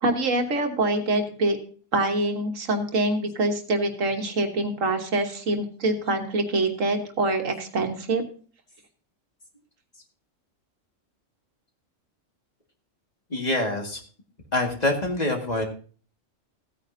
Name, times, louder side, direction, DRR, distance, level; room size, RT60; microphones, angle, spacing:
voice 1, 0.0-1.6 1.9-8.2, right 2 dB, 80° right, 4 dB, 1.7 m, -25 dB
voice 2, 13.3-14.0 14.5-15.6, left 2 dB, 30° left, 1 dB, 1.9 m, -25 dB
16.0 x 9.2 x 2.7 m, 0.41 s
omnidirectional pair, 1.3 m